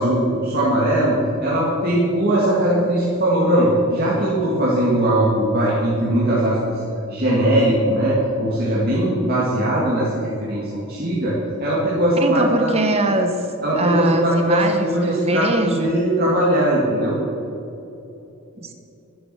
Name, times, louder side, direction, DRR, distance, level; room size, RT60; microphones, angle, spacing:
voice 1, 0.0-6.8 7.1-12.7 13.6-17.2, right 1 dB, 45° right, -7 dB, 2.3 m, -20 dB
voice 2, 12.2-13.5 13.8-15.9 18.6-18.7, right 2 dB, 30° right, 6 dB, 1.1 m, -22 dB
12.0 x 10.5 x 6.2 m, 2.9 s
head